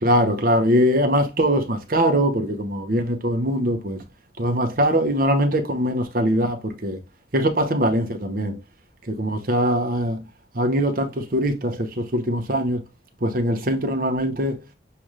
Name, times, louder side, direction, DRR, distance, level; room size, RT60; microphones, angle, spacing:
voice 1, 0.0-4.0 4.4-7.0 7.3-8.6 9.1-10.2 10.5-12.8 13.2-14.6, equal, 50° right, 0.8 m, -22 dB
6.8 x 2.5 x 3.1 m
head